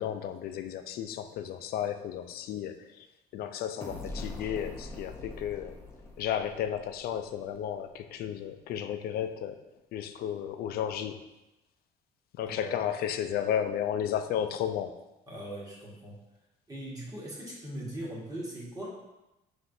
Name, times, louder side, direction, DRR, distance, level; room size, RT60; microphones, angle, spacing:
voice 1, 0.0-3.1 3.3-5.8 6.2-9.6 9.9-11.2 12.3-15.0, left 9 dB, 65° left, 8 dB, 0.4 m, -33 dB
sound 1, 3.8-7.5, left 2 dB, 15° left, 0.7 m, -43 dB
voice 2, 12.4-12.8 15.3-16.2 16.7-18.9, right 1 dB, 20° right, -5 dB, 1.5 m, -40 dB
5.6 x 3.3 x 2.6 m, 0.97 s
cardioid pair, 110°, 17 cm